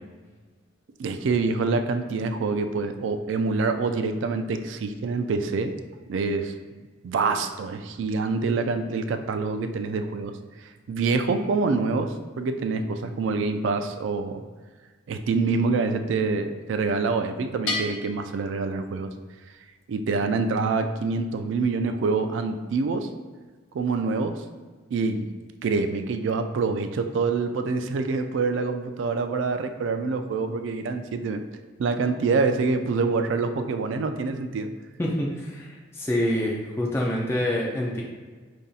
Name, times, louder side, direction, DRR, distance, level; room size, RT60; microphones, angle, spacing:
voice 1, 1.0-5.7 6.1-6.5 7.0-10.4 10.9-14.4 15.1-19.1 19.9-23.1 23.7-24.4 24.9-25.3 25.6-31.4 31.8-34.7, right 4 dB, 70° right, 7 dB, 0.3 m, -26 dB
Bell, 17.7-19.4, left 3 dB, 75° left, 0.6 m, -34 dB
voice 2, 35.0-38.0, left 1 dB, 15° left, -3 dB, 0.4 m, -26 dB
5.3 x 2.6 x 2.4 m, 1.4 s
head